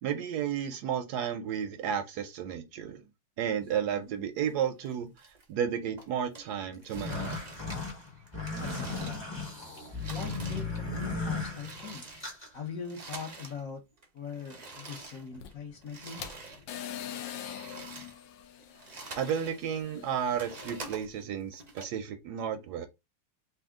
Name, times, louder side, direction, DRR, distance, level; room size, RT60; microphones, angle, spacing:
voice 1, 0.0-3.0 3.4-7.4 19.2-22.9, right 8 dB, 70° right, 1.0 m, -33 dB
sound 1, 3.4-4.5 4.9-5.7 6.0-9.6 9.8-13.6 13.9-16.7 17.1-19.6 20.0-21.8, right 3 dB, 50° right, 0.4 m, -47 dB
sound 2, 6.8-12.5, left 3 dB, 20° left, 0.9 m, -36 dB
voice 2, 8.6-9.7 10.1-12.2 12.5-13.8 14.1-16.2, left 5 dB, 55° left, 1.2 m, -42 dB
sound 3, 15.3-20.8, left 10 dB, 80° left, 1.3 m, -44 dB
3.5 x 2.7 x 3.5 m
omnidirectional pair, 1.9 m